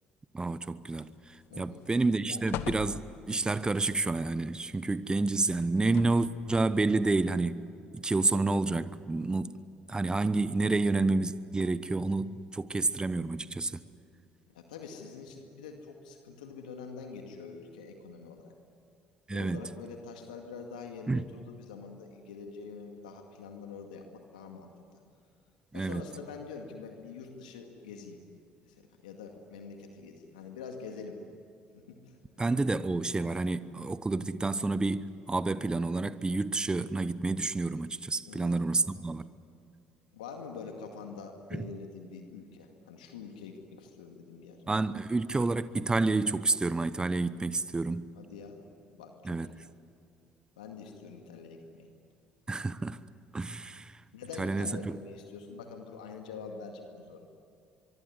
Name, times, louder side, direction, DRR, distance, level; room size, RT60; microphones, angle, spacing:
voice 1, 0.3-3.0 3.3-7.7 7.9-9.6 9.9-13.8 19.3-19.6 21.1-21.2 25.7-26.0 32.4-39.2 41.5-41.7 44.7-48.1 49.2-49.5 52.5-53.0 53.3-54.0 54.4-55.0, right 3 dB, 20° right, 15 dB, 1.0 m, -29 dB
sound 1, 0.9-1.5 1.9-2.0 2.5-3.5 5.6-6.4 7.2-7.3, left 11 dB, 65° left, 1.0 m, -40 dB
voice 2, 1.5-1.9 2.3-2.4 7.8-8.1 14.5-18.5 19.3-25.0 25.7-28.2 28.7-31.2 31.7-32.2 38.3-38.6 40.1-44.6 48.2-48.6 49.0-49.6 50.6-51.9 54.1-57.2, left 5 dB, 85° left, 3 dB, 2.2 m, -45 dB
24.0 x 24.0 x 9.8 m, 2.4 s
hypercardioid pair, 60°, 4 cm